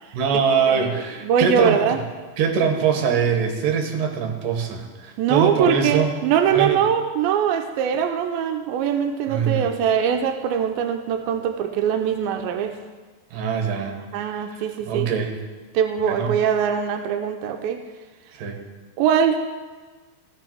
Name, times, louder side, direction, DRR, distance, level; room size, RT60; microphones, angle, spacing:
voice 1, 0.1-1.8 2.4-6.1 6.5-6.8 9.3-9.7 13.3-14.0 14.5-15.4 16.1-16.3 18.4-18.6, right 6 dB, 70° right, 3 dB, 2.7 m, -23 dB
voice 2, 0.7-2.0 5.2-12.8 14.1-15.1 15.7-17.8 19.0-19.4, right 8 dB, 90° right, 5 dB, 2.4 m, -22 dB
14.5 x 6.7 x 4.5 m, 1.3 s
omnidirectional pair, 4.1 m